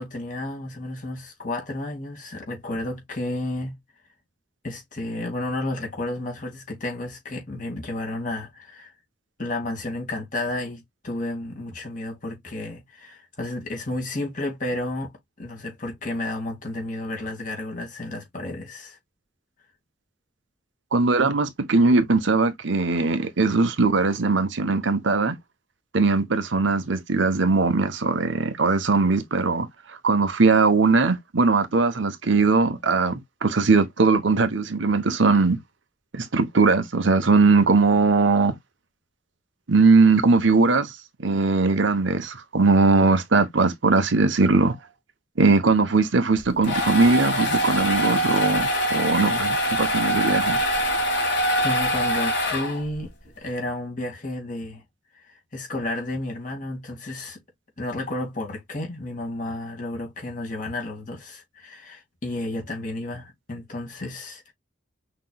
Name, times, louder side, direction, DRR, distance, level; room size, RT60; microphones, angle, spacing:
voice 1, 0.0-3.8 4.6-8.9 9.4-15.1 15.4-19.0 51.6-53.1 53.4-54.8 55.2-57.4 57.8-64.5, left 1 dB, 40° left, 2.1 m, -32 dB
voice 2, 20.9-25.3 25.9-29.7 30.0-35.6 36.1-38.5 39.7-44.8 45.4-50.6, right 3 dB, 70° right, 0.9 m, -20 dB
sound 1, 46.4-53.1, equal, 60° left, 1.7 m, -24 dB
5.9 x 3.0 x 2.2 m
head